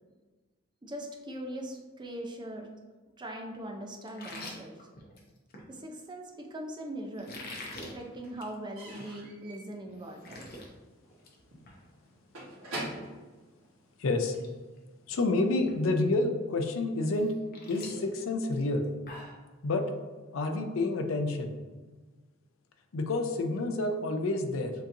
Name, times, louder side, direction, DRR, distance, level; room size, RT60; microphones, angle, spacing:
voice 1, 0.8-2.7 3.2-4.8 5.7-7.3 7.9-10.5, right 1 dB, 20° right, 2 dB, 0.5 m, -40 dB
sound 1, 4.1-5.7 7.2-7.9 8.3-8.6 8.9-9.0 9.5-9.6 9.9-10.7 11.0-11.4 11.7-11.8 13.6-13.7 14.2-14.5 14.8-15.2 15.7-15.8 17.1-19.4, left 2 dB, 45° left, 0.8 m, -45 dB
Slam / Squeak / Wood, 6.5-7.3 7.6-14.4, right 1 dB, 75° right, 1.4 m, -45 dB
voice 2, 14.0-14.3 15.1-17.3 17.6-18.9 19.6-19.9 20.3-21.5 22.9-24.7, left 2 dB, 70° left, 6 dB, 0.5 m, -29 dB
7.0 x 2.9 x 2.5 m, 1.3 s
head